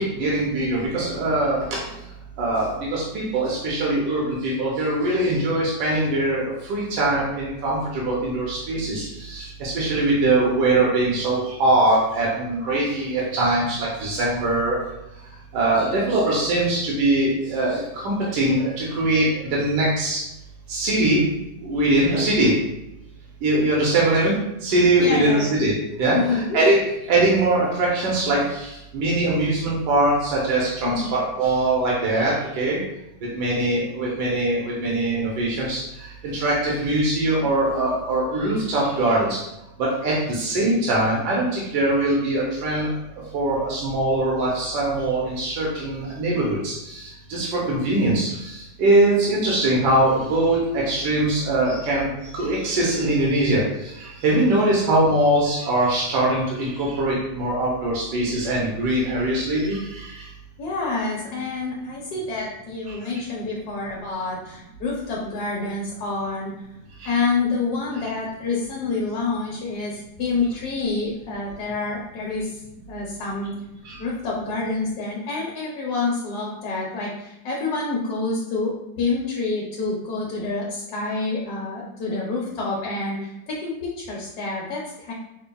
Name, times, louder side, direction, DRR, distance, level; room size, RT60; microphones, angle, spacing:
voice 1, 0.0-1.6 2.4-14.8 15.5-20.2 20.7-21.2 21.6-22.5 23.4-26.2 26.5-26.8 27.1-32.8 33.3-35.8 36.2-39.4 39.8-42.9 43.3-60.3 62.9-63.0 67.0-67.1 73.8-73.9, right 2 dB, 80° right, -4 dB, 1.4 m, -22 dB
voice 2, 25.0-25.6 26.1-26.7 30.8-31.1 33.5-33.7 60.6-66.5 67.0-72.6 72.9-73.5 74.0-85.1, left 3 dB, 70° left, -4 dB, 1.2 m, -27 dB
5.4 x 2.2 x 2.2 m, 0.90 s
omnidirectional pair, 1.8 m